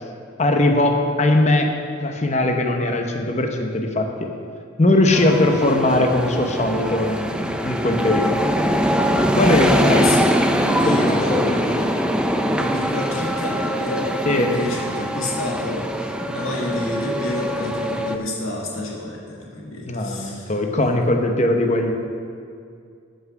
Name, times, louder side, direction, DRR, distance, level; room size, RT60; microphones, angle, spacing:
voice 1, 0.4-1.7 2.0-4.3 4.8-8.4 9.3-10.1 10.9-11.6 14.2-14.6 19.9-21.9, left 1 dB, 35° left, 3 dB, 0.9 m, -20 dB
sound 1, 5.1-18.2, equal, 5° right, 0.4 m, -23 dB
voice 2, 9.4-20.5, left 2 dB, 85° left, -3 dB, 1.8 m, -29 dB
14.0 x 6.0 x 5.7 m, 2.3 s
head